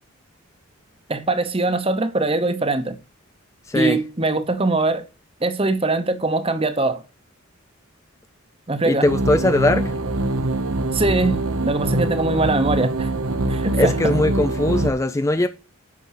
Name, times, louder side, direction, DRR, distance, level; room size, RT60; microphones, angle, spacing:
voice 1, 1.1-3.0 3.7-5.0 5.4-7.0 8.7-9.1 10.9-13.1 13.5-13.9, right 2 dB, 25° right, 0.8 m, -22 dB
voice 2, 3.7-4.0 8.9-9.9 13.7-15.5, left 1 dB, 15° left, 0.4 m, -20 dB
sound 1, 9.1-14.9, right 2 dB, 75° right, 0.9 m, -23 dB
8.5 x 6.0 x 5.7 m
head